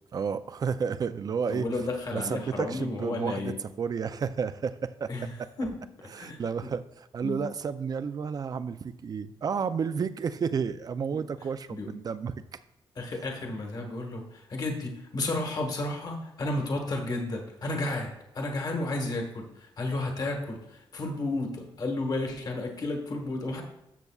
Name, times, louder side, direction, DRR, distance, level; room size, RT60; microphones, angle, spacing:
voice 1, 0.1-1.7 2.1-5.1 5.4-5.5 6.1-12.3 13.1-13.2, right 6 dB, 40° right, 12 dB, 0.4 m, -31 dB
voice 2, 1.5-3.6 5.1-5.3 5.6-6.7 7.2-7.5 11.1-11.3 11.7-11.9 13.0-23.6, left 2 dB, 45° left, 3 dB, 1.4 m, -32 dB
13.5 x 6.7 x 2.3 m, 0.87 s
wide cardioid pair, 135°, 9 cm